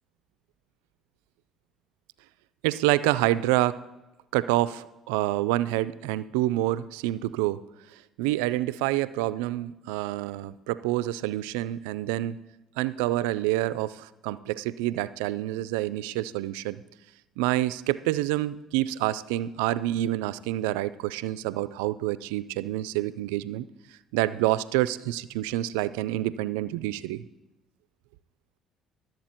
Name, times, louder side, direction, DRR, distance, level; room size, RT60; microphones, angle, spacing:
voice 1, 2.6-3.8 4.3-7.6 7.9-12.4 12.8-16.8 17.4-23.7 24.1-27.2, right 15 dB, 85° right, 17 dB, 0.3 m, -27 dB
13.0 x 7.8 x 4.4 m, 1.0 s
hypercardioid pair, 65°, 0 cm